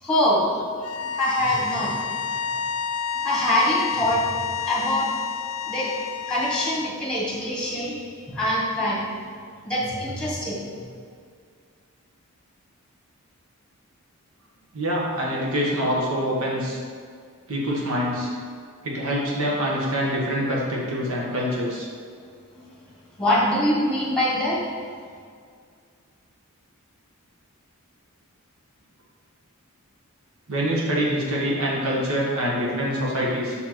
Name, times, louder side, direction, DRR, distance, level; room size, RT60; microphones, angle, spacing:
voice 1, 0.0-0.8 1.1-2.2 3.2-4.4 4.6-5.2 5.6-5.9 6.3-8.0 8.3-9.2 9.6-10.7 22.6-22.7 23.2-24.7, left 1 dB, 5° left, -6 dB, 1.6 m, -24 dB
sound 1, 0.8-6.9, left 6 dB, 70° left, 0.3 m, -29 dB
voice 2, 14.7-16.8 17.5-18.3 18.8-21.9 30.5-33.5, equal, 65° right, -4 dB, 1.3 m, -25 dB
5.6 x 4.4 x 4.6 m, 2.1 s
head